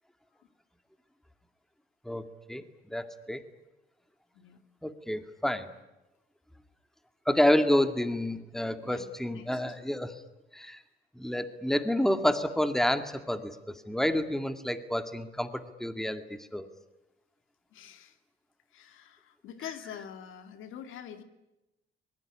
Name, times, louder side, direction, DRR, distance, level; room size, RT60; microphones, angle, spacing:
voice 1, 2.1-3.4 4.8-5.7 7.3-10.2 10.5-10.8 11.2-16.7, left 1 dB, ahead, 8 dB, 2.1 m, -29 dB
voice 2, 8.8-9.6 17.7-18.2 18.7-21.2, left 9 dB, 85° left, 8 dB, 2.2 m, -45 dB
24.5 x 21.0 x 10.0 m, 0.97 s
cardioid pair, 90°, 20 cm